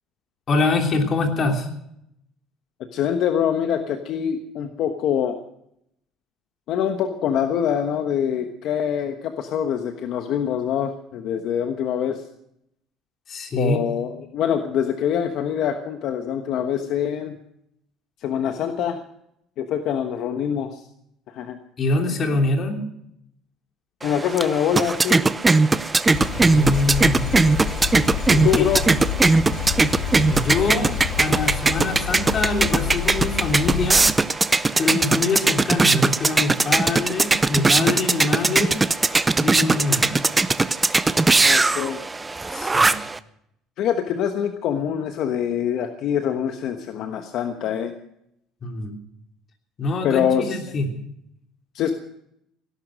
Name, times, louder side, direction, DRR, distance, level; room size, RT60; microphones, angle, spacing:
voice 1, 0.5-1.7 13.3-13.8 21.8-22.8 26.3-27.3 28.3-28.6 30.3-34.0 34.8-38.8 39.4-40.1 42.5-42.9 48.6-48.9 49.8-50.9, left 2 dB, 35° left, 3 dB, 3.2 m, -24 dB
voice 2, 2.9-5.4 6.7-12.2 13.6-17.4 18.2-19.0 19.6-20.8 21.3-21.6 24.0-25.2 28.3-28.8 41.4-42.0 43.8-48.0 50.0-50.6 51.7-51.9, left 9 dB, 60° left, 6 dB, 1.2 m, -24 dB
sound 1, 24.0-43.2, right 3 dB, 15° right, 0.5 m, -20 dB
sound 2, 26.1-34.1, left 9 dB, 80° left, 1.5 m, -29 dB
17.5 x 11.5 x 6.4 m, 0.77 s
cardioid pair, 130°, 0 cm